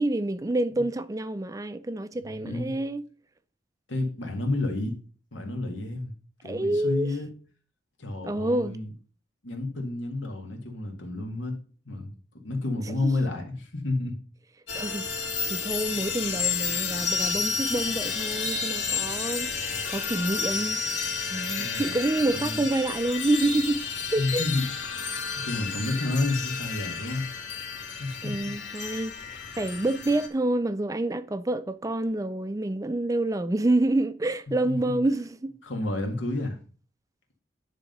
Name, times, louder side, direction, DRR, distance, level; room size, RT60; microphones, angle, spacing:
voice 1, 0.0-3.0 6.4-7.1 8.2-8.8 14.7-19.6 19.9-20.8 21.3-23.9 24.1-24.4 28.2-35.5, right 2 dB, 20° right, 0.4 m, -28 dB
voice 2, 2.2-2.7 3.9-5.0 5.3-6.1 6.4-7.3 8.0-8.9 9.4-11.6 11.9-12.1 12.4-14.2 21.6-22.0 22.3-22.6 24.2-24.7 25.4-27.3 28.0-28.5 34.6-35.0 35.6-36.6, left 2 dB, 90° left, 2.0 m, -30 dB
sound 1, 14.7-30.3, left 5 dB, 75° left, 2.7 m, -31 dB
10.0 x 3.7 x 5.4 m
head